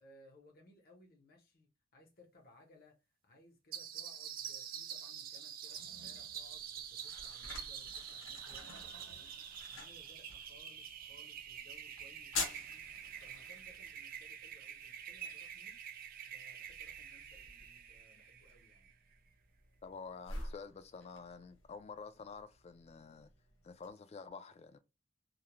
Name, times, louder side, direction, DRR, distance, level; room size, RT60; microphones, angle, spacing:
voice 1, 0.0-9.3 9.7-12.9 13.2-15.9 16.3-18.9, left 1 dB, 50° left, 0.9 m, -63 dB
sound 1, 3.7-18.9, right 8 dB, 50° right, 0.4 m, -47 dB
Toilet flush, 5.6-14.9, right 1 dB, 85° right, 0.8 m, -64 dB
sound 2, 6.4-23.9, left 3 dB, 85° left, 0.9 m, -49 dB
voice 2, 19.8-23.3 23.6-24.8, left 5 dB, 35° left, 0.3 m, -49 dB
2.4 x 2.1 x 2.9 m
head